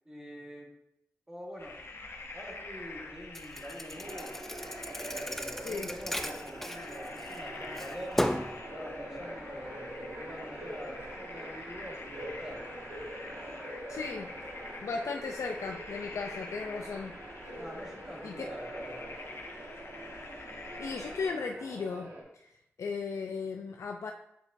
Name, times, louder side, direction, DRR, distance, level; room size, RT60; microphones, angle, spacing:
voice 1, 0.0-0.7 1.3-1.8 2.3-4.3 5.1-12.6 17.6-19.2, equal, 10° right, -2 dB, 1.4 m, -46 dB
sound 1, 1.6-21.3, left 3 dB, 55° left, 0.8 m, -47 dB
Thump thud, 3.3-7.4 7.8-8.6, equal, 5° left, 0.4 m, -35 dB
sound 2, 3.9-22.2, right 1 dB, 70° right, 1.6 m, -44 dB
voice 2, 5.6-5.9 13.9-14.3 14.8-17.1 18.2-18.5 20.8-22.5 22.8-24.1, left 4 dB, 90° left, 2 dB, 0.4 m, -36 dB
8.0 x 4.5 x 2.6 m, 0.79 s
wide cardioid pair, 120°, 5 cm